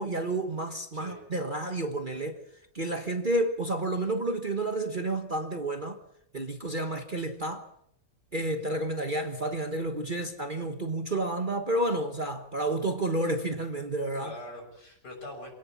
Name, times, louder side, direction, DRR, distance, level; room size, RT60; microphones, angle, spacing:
voice 1, 0.0-2.4 2.7-6.0 6.3-7.7 8.3-14.3, right 2 dB, 30° right, 1.3 m, -30 dB
voice 2, 8.5-8.8 14.2-15.5, left 1 dB, 65° left, 7.2 m, -44 dB
26.5 x 17.5 x 7.3 m
omnidirectional pair, 1.9 m